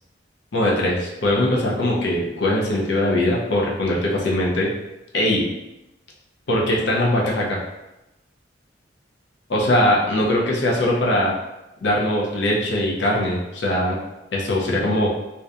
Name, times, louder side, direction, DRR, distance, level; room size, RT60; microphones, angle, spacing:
voice 1, 0.5-4.7 5.1-5.4 6.5-7.6 9.5-11.3 11.8-14.0 14.3-15.1, left 1 dB, 70° left, -3 dB, 0.6 m, -21 dB
2.7 x 2.2 x 2.4 m, 0.97 s
head